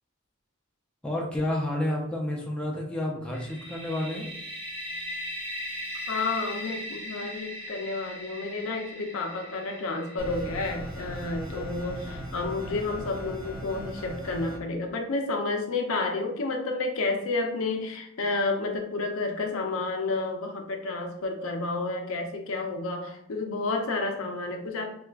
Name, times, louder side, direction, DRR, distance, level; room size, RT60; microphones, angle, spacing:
voice 1, 1.0-4.3, left 1 dB, 5° left, -2 dB, 0.4 m, -30 dB
sound 1, 3.3-13.0, equal, 45° right, 1.2 m, -39 dB
voice 2, 6.1-24.9, left 3 dB, 80° left, 3 dB, 0.5 m, -30 dB
sound 2, 10.2-14.6, equal, 15° right, 0.8 m, -38 dB
4.5 x 2.2 x 2.3 m, 0.77 s
head